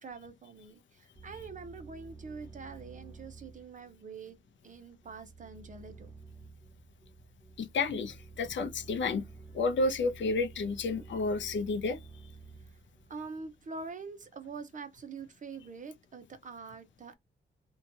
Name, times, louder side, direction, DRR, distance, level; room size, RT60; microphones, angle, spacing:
voice 1, 0.0-4.4 4.6-6.1 13.1-17.1, right 4 dB, 40° right, 0.6 m, -45 dB
sound 1, 1.1-13.6, right 4 dB, 5° right, 1.2 m, -51 dB
voice 2, 7.6-9.2 9.5-12.0, left 3 dB, 70° left, 0.5 m, -31 dB
2.7 x 2.2 x 2.7 m
wide cardioid pair, 120°, 20 cm